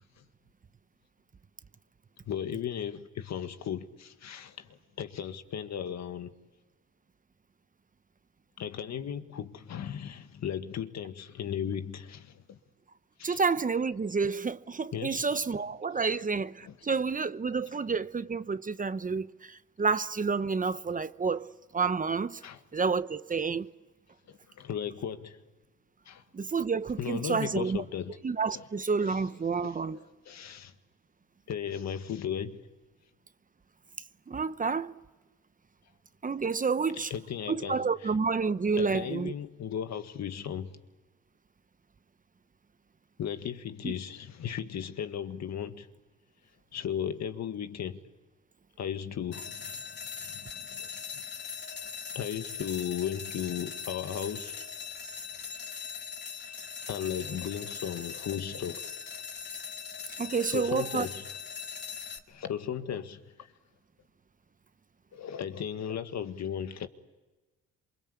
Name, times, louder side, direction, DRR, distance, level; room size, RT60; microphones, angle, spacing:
voice 1, 2.3-6.3 8.6-12.6 13.2-13.4 14.9-15.4 16.7-16.8 22.4-22.6 24.3-25.4 26.1-26.2 27.0-28.2 28.5-28.6 29.8-30.7 31.5-32.6 37.1-37.8 38.8-40.8 43.2-45.9 46.7-48.0 48.8-49.8 50.3-50.9 52.2-54.7 56.3-58.9 60.5-61.2 62.3-63.2 65.1-66.9, left 8 dB, 60° left, 1.8 m, -36 dB
voice 2, 13.2-21.5 21.7-22.4 22.7-23.7 26.3-27.8 28.2-30.0 34.3-34.9 36.2-37.1 37.5-39.3 43.8-43.9 60.2-61.1, right 5 dB, 25° right, 0.9 m, -29 dB
sound 1, 49.3-62.2, left 6 dB, 35° left, 2.3 m, -40 dB
27.5 x 24.0 x 8.5 m
cardioid pair, 90°, 30 cm